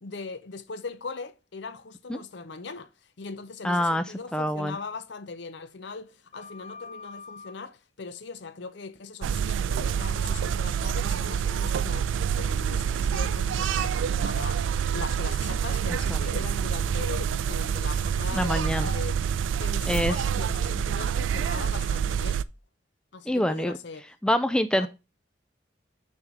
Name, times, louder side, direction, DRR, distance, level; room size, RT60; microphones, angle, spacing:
voice 1, 0.0-2.9 3.2-19.1 19.6-22.4 23.1-24.1 24.7-24.9, left 4 dB, 65° left, 0.6 m, -40 dB
voice 2, 3.6-4.0 4.3-4.8 16.1-16.2 18.3-18.9 19.9-20.1 23.3-23.8 24.2-24.9, left 1 dB, 5° left, 0.3 m, -25 dB
Sliding door, 6.1-7.7 9.5-9.7 10.0-12.5 13.1-20.6, left 3 dB, 35° left, 1.9 m, -50 dB
sound 1, 9.2-22.4, right 7 dB, 80° right, 0.3 m, -27 dB
6.3 x 3.6 x 6.1 m
head